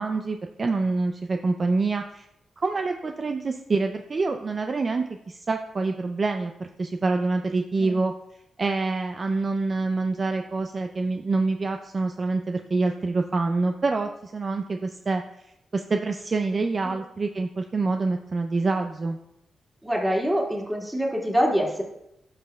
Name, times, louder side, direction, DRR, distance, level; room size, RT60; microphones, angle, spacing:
voice 1, 0.0-2.3 2.6-8.1 8.6-15.2 15.7-19.2, right 3 dB, 45° right, 5 dB, 0.4 m, -26 dB
voice 2, 19.8-21.8, equal, 10° right, -1 dB, 2.3 m, -25 dB
11.5 x 5.5 x 2.3 m, 0.82 s
supercardioid pair, 55°, 0 cm